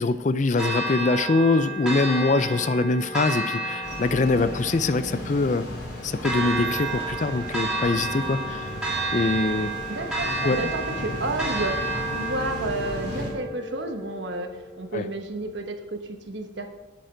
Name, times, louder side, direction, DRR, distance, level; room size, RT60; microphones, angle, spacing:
voice 1, 0.0-5.6 6.0-8.7 9.1-9.7 10.4-10.7 14.9-15.0, left 3 dB, 40° left, 13 dB, 0.4 m, -23 dB
Church bell, 0.6-14.6, right 2 dB, 5° right, 2.3 m, -31 dB
sound 1, 3.8-13.3, equal, 65° left, 3.7 m, -36 dB
voice 2, 9.9-16.7, right 2 dB, 70° right, 5 dB, 1.2 m, -31 dB
9.2 x 8.8 x 5.0 m, 1.2 s
head